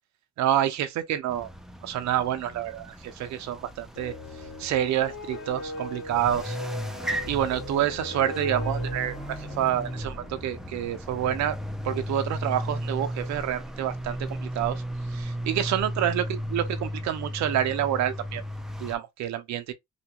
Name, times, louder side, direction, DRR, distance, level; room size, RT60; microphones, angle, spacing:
voice 1, 0.4-1.5 1.8-4.1 4.6-6.6 7.3-11.6 11.8-14.8 15.1-18.4 18.8-19.7, right 11 dB, 65° right, 0.5 m, -28 dB
sound 1, 1.3-19.0, equal, ahead, 0.4 m, -35 dB
sound 2, 3.9-10.9, left 1 dB, 80° left, 1.6 m, -39 dB
2.8 x 2.3 x 2.8 m
cardioid pair, 90°, 30 cm